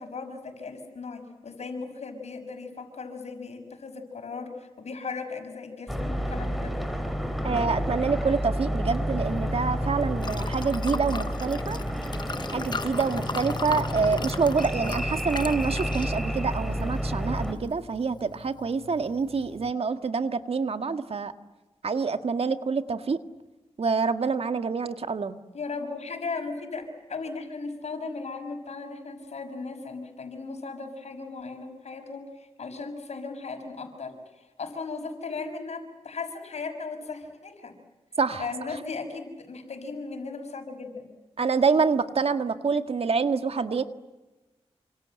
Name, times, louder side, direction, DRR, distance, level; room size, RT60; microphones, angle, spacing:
voice 1, 0.0-6.8 25.5-37.7 38.4-41.1, left 4 dB, 75° left, 5 dB, 6.2 m, -37 dB
sound 1, 5.9-17.5, equal, ahead, 4.7 m, -30 dB
voice 2, 7.4-11.8 12.5-21.3 21.8-23.2 23.8-25.4 38.2-38.5 41.4-43.8, right 5 dB, 60° right, 9 dB, 1.7 m, -26 dB
Liquid, 9.2-19.7, left 4 dB, 40° left, 0.9 m, -39 dB
28.5 x 26.5 x 7.8 m, 1.1 s
cardioid pair, 70°, 11 cm